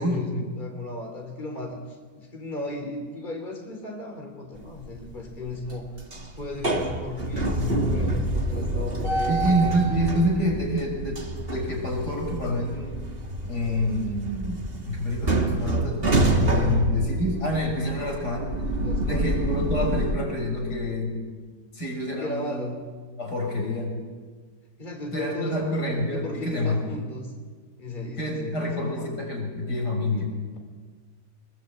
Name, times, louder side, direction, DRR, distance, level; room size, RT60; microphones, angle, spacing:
voice 1, 0.0-5.9 6.4-9.4 18.8-19.4 22.2-22.8 24.8-25.7 26.1-27.3 27.8-29.1, left 2 dB, 30° left, 3 dB, 3.7 m, -35 dB
sound 1, 4.6-5.1 5.5-20.1, right 1 dB, 35° right, 2.3 m, -27 dB
voice 2, 9.3-13.0 13.4-18.5 19.0-21.2 21.7-22.7 23.2-23.9 25.1-26.8 28.2-30.3, equal, 80° left, 0 dB, 6.6 m, -27 dB
25.0 x 21.5 x 8.7 m, 1.5 s
omnidirectional pair, 1.7 m